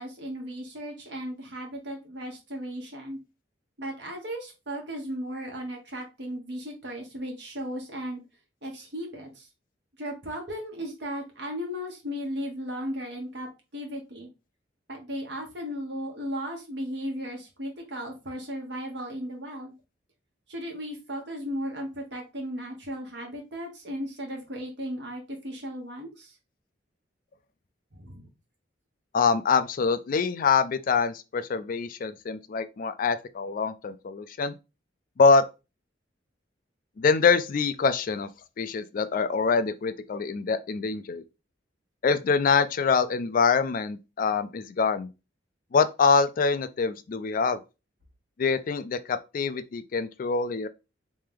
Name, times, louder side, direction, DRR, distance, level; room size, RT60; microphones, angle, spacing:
voice 1, 0.0-3.2 3.8-8.2 8.6-9.5 10.0-13.5 13.7-14.3 14.9-19.7 20.5-26.3 27.9-28.3, equal, 65° right, 1.5 m, -36 dB
voice 2, 29.1-34.5 35.2-35.4 37.0-38.3 38.6-41.2 42.0-45.1 45.7-47.6 48.4-50.7, left 5 dB, 50° left, 0.4 m, -25 dB
3.3 x 3.2 x 3.5 m
head